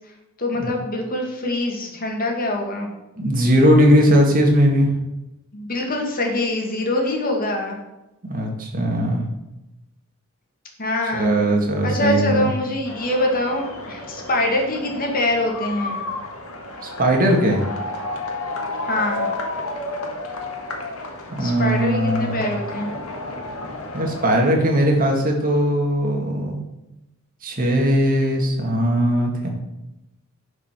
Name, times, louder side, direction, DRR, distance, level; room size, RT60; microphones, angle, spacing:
voice 1, 0.4-2.9 5.5-7.7 10.8-11.3 11.8-16.0 18.8-19.3 21.4-22.9, left 1 dB, 40° left, 1 dB, 2.0 m, -24 dB
voice 2, 3.2-4.9 8.3-9.2 11.1-12.5 17.0-17.6 21.3-22.4 23.9-26.6 27.4-29.5, equal, 40° right, 1 dB, 2.1 m, -19 dB
sound 1, 12.8-24.5, left 2 dB, 80° left, 1.7 m, -31 dB
10.5 x 5.0 x 6.0 m, 0.94 s
head